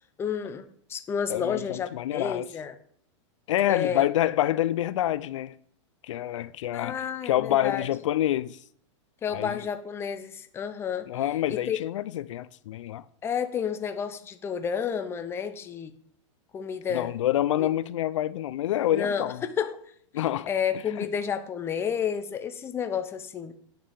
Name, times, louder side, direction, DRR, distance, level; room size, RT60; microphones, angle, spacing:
voice 1, 0.2-0.6 0.9-2.7 3.7-4.0 6.7-7.9 9.2-11.1 11.5-11.8 13.2-15.9 16.5-17.1 17.6-17.7 18.9-19.8 20.5-23.5, left 7 dB, 15° left, 0.7 m, -30 dB
voice 2, 1.3-2.5 3.5-5.6 6.0-8.6 9.3-9.6 11.1-13.0 16.9-19.4 20.1-20.5 21.0-21.1, left 13 dB, 75° left, 0.5 m, -27 dB
9.1 x 5.5 x 7.1 m
supercardioid pair, 150°, 16 cm